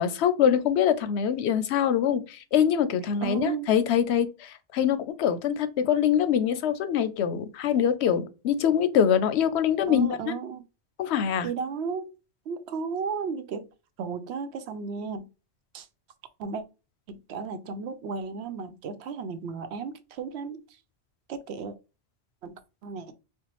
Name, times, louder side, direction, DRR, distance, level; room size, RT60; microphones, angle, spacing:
voice 1, 0.0-10.3 11.0-11.5, left 8 dB, 85° left, 0.9 m, -24 dB
voice 2, 3.2-3.7 9.9-10.6 11.4-12.1 12.5-13.7 14.0-15.3 15.7-15.9 16.4-16.6 17.1-20.6 21.3-21.7 22.4-22.5 22.8-23.1, right 5 dB, 85° right, 0.9 m, -34 dB
4.4 x 2.2 x 2.9 m
omnidirectional pair, 1.1 m